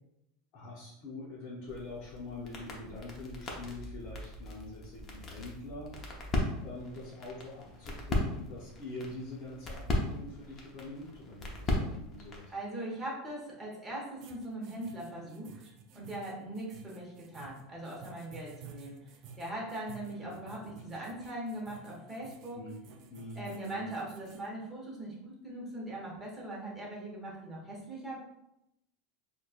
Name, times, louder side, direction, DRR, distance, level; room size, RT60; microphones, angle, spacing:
voice 1, 0.5-5.9 6.6-12.5 20.2-20.3 20.6-21.0 22.5-22.8 23.1-23.9, left 2 dB, 45° left, -7 dB, 0.9 m, -44 dB
sound 1, 1.7-12.5, left 1 dB, 25° left, 0.6 m, -37 dB
voice 2, 12.5-15.6 15.9-19.1 19.4-22.6 23.3-28.2, right 1 dB, 15° right, -4 dB, 1.0 m, -40 dB
sound 2, 14.2-24.5, right 4 dB, 45° right, 0.3 m, -53 dB
4.1 x 2.3 x 2.4 m, 0.83 s
supercardioid pair, 155°, 0 cm